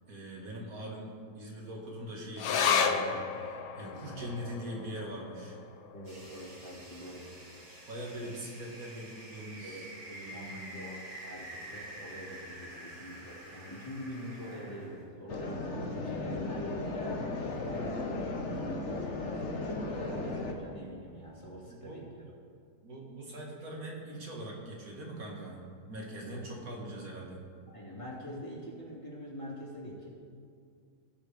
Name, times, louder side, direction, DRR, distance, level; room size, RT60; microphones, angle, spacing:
voice 1, 0.1-5.6 7.9-10.8 21.7-22.0 22.8-25.6 25.9-27.4, right 1 dB, 55° right, -2 dB, 2.1 m, -42 dB
sound 1, 2.4-9.1 9.5-9.6 9.9-10.6 11.1-11.2, left 6 dB, 65° left, 1.1 m, -35 dB
voice 2, 3.8-4.3 5.9-7.3 9.6-22.0 26.2-26.7 27.7-30.1, equal, 20° left, -7 dB, 2.3 m, -45 dB
sound 2, 6.0-15.0, right 1 dB, 80° right, 3.7 m, -48 dB
sound 3, 15.3-20.5, left 2 dB, 50° left, 1.2 m, -35 dB
18.0 x 6.1 x 3.4 m, 2.2 s
omnidirectional pair, 1.8 m